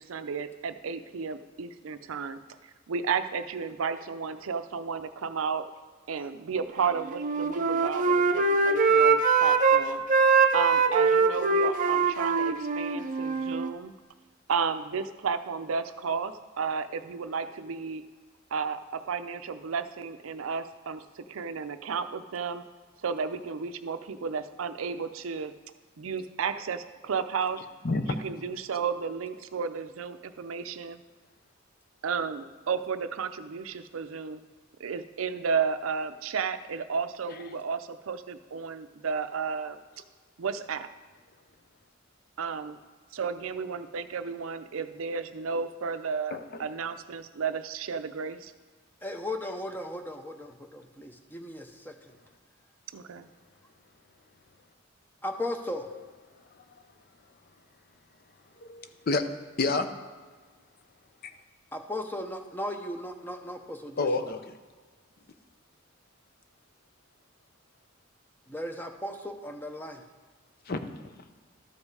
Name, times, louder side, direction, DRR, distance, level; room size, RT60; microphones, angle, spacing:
voice 1, 0.0-2.4 2.9-5.7 6.1-10.0 10.5-13.9 14.5-18.0 18.5-22.6 23.0-25.5 26.0-27.7 28.0-31.0 32.0-34.4 34.8-39.8 40.4-40.9 42.4-42.8 43.1-48.5 52.9-53.3, right 5 dB, 85° right, 11 dB, 0.5 m, -33 dB
Wind instrument woodwind instrument, 7.1-9.8 10.1-13.7, right 4 dB, 40° right, 0.6 m, -23 dB
voice 2, 49.0-52.1 55.2-55.9 61.7-64.3 68.5-70.0, left 1 dB, 10° left, 5 dB, 0.7 m, -36 dB
voice 3, 58.7-59.2 59.5-59.9 64.0-64.5 70.7-70.8, left 3 dB, 50° left, 8 dB, 0.6 m, -28 dB
12.5 x 5.3 x 4.7 m, 1.4 s
head